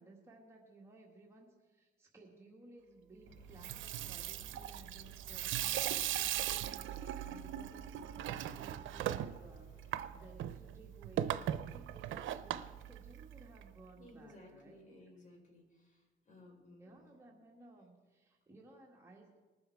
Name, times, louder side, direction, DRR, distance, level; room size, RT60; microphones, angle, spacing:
voice 1, 0.0-14.8 16.8-19.4, right 2 dB, 15° right, -2 dB, 1.8 m, -58 dB
sound 1, 3.2-10.5, left 3 dB, 80° left, 2.8 m, -61 dB
Water tap faucet / Sink (filling or washing), 3.4-13.6, right 12 dB, 75° right, 0.6 m, -39 dB
voice 2, 13.9-17.0, left 1 dB, 40° left, -1 dB, 4.3 m, -58 dB
20.0 x 7.1 x 4.6 m, 1.3 s
cardioid pair, 90°, 20 cm